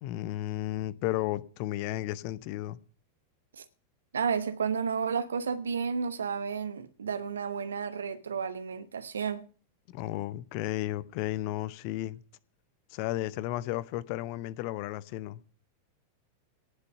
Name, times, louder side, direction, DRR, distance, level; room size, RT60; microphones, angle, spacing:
voice 1, 0.0-2.8 9.9-12.2 12.9-15.4, left 15 dB, 45° left, 0.8 m, -33 dB
voice 2, 4.1-9.5, right 6 dB, 70° right, 1.0 m, -32 dB
18.0 x 6.8 x 5.8 m
figure-of-eight pair, 90°, 0 cm